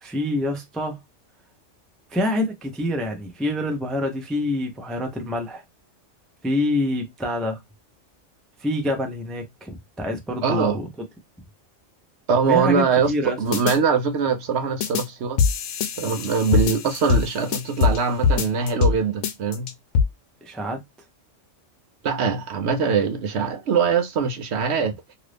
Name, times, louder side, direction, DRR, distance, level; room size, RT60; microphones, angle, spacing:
voice 1, 0.0-1.0 2.1-5.6 6.4-7.6 8.6-10.9 12.5-13.4 20.4-20.8, left 1 dB, ahead, 0.4 m, -26 dB
voice 2, 10.4-10.8 12.3-13.1 13.4-15.4 16.0-19.7 22.0-25.0, right 5 dB, 65° right, 0.8 m, -22 dB
sound 1, 13.5-13.8 14.8-15.0 15.4-18.0 18.2-19.0 19.2-20.0, left 6 dB, 80° left, 0.9 m, -22 dB
2.8 x 2.5 x 3.3 m
omnidirectional pair, 1.3 m